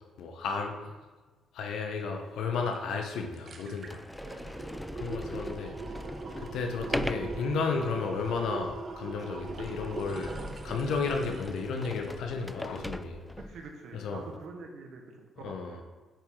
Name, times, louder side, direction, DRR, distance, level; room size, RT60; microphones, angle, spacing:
voice 1, 0.2-0.8 1.5-4.0 4.3-4.5 5.0-5.7 6.4-10.4 10.6-13.3 13.9-14.2 15.4-15.8, left 4 dB, 80° left, 4 dB, 0.9 m, -33 dB
Sliding door, 2.4-2.5 3.2-3.3 3.8-13.7, left 1 dB, 5° left, 0.3 m, -40 dB
sound 1, 2.8-2.9 3.2-12.2 12.6-12.7, right 3 dB, 50° right, 1.0 m, -41 dB
voice 2, 4.2-4.8 13.4-15.8, right 4 dB, 70° right, 3 dB, 1.2 m, -46 dB
8.9 x 4.8 x 3.8 m, 1.3 s
cardioid pair, 90°, 0 cm